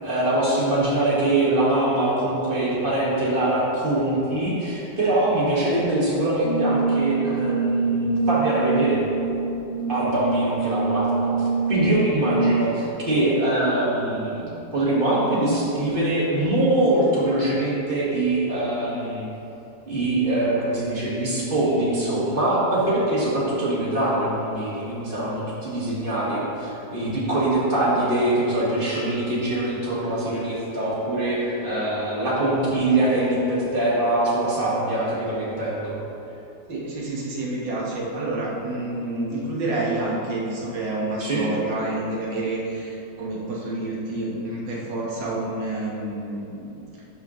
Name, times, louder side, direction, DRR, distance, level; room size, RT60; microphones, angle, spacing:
voice 1, 0.0-9.0 9.9-11.3 11.7-19.3 19.9-36.0 41.2-41.5, right 1 dB, 30° right, -6 dB, 1.7 m, -23 dB
Brass instrument, 6.4-12.8, right 4 dB, 45° left, 1.0 m, -24 dB
voice 2, 36.7-47.0, right 2 dB, 70° right, -4 dB, 2.0 m, -29 dB
11.5 x 5.5 x 3.1 m, 2.9 s
omnidirectional pair, 2.0 m